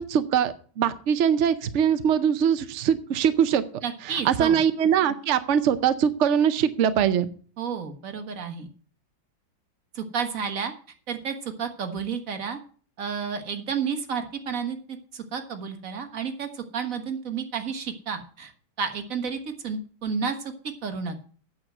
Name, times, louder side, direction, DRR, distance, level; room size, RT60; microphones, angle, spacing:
voice 1, 0.0-3.6 4.1-7.3, right 8 dB, 75° right, 11 dB, 0.6 m, -22 dB
voice 2, 3.8-4.6 7.6-8.7 9.9-10.7 11.1-12.6 13.0-18.5 18.8-21.2, right 6 dB, 45° right, 7 dB, 1.6 m, -31 dB
8.9 x 7.2 x 7.7 m, 0.43 s
omnidirectional pair, 2.1 m